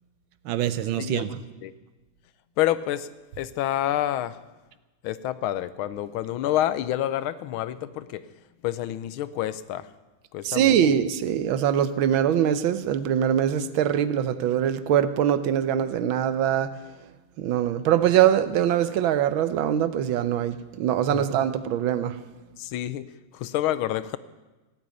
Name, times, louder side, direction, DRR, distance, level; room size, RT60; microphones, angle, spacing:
voice 1, 0.4-1.4 10.4-16.7 17.4-22.2, right 10 dB, 80° right, 13 dB, 1.6 m, -23 dB
voice 2, 2.6-3.1 3.4-4.4 5.0-8.3 8.6-9.9 10.3-10.8 21.1-21.3 22.6-23.1 23.3-24.2, left 13 dB, 85° left, 15 dB, 1.5 m, -28 dB
17.0 x 8.6 x 9.2 m, 1.1 s
omnidirectional pair, 2.2 m